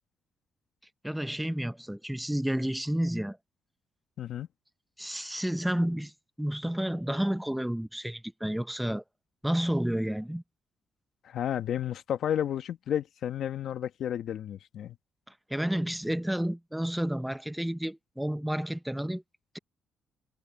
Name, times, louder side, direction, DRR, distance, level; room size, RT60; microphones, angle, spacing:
voice 1, 1.0-3.4 5.0-6.1 6.4-9.0 9.4-10.4 15.5-19.2, equal, 5° right, 0.8 m, -30 dB
voice 2, 11.2-15.0, left 10 dB, 70° left, 1.5 m, -32 dB
cardioid pair, 85°, 0 cm